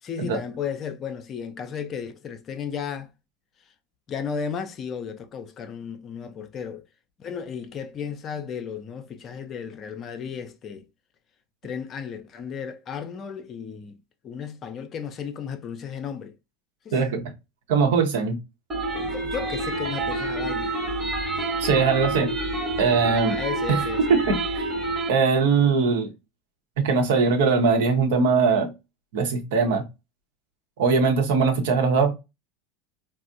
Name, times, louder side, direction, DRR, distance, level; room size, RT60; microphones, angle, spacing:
voice 1, 0.0-3.1 4.1-6.8 7.2-10.9 11.6-13.9 14.2-16.3 16.8-17.0 19.0-20.7 21.4-21.5 23.1-24.0, left 7 dB, 35° left, 0.5 m, -34 dB
voice 2, 16.9-17.3 17.7-18.4 21.6-22.3 22.8-23.3 23.7-23.8 24.1-24.6 25.1-26.1 26.8-28.7 29.1-29.8 30.8-32.1, right 5 dB, 65° right, 0.8 m, -21 dB
sound 1, 18.7-25.1, right 2 dB, 20° right, 1.1 m, -28 dB
4.2 x 2.0 x 2.5 m
figure-of-eight pair, 80°, 0 cm